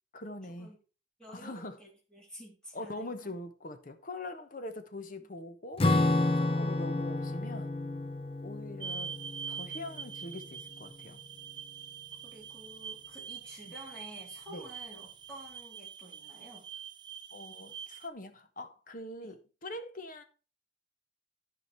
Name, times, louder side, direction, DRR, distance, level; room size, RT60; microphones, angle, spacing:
voice 1, 0.1-0.7 1.3-1.8 2.7-7.7 8.4-9.1 9.5-11.2 13.6-13.7 14.5-14.6 17.3-20.2, left 1 dB, 45° left, 1.1 m, -43 dB
voice 2, 1.2-3.3 5.2-5.3 12.2-16.7 19.2-19.3, equal, 5° left, 3.7 m, -50 dB
Acoustic guitar / Strum, 5.8-10.6, left 2 dB, 30° left, 0.5 m, -31 dB
sound 1, 8.8-18.1, right 7 dB, 25° right, 0.4 m, -44 dB
12.5 x 5.1 x 4.5 m
head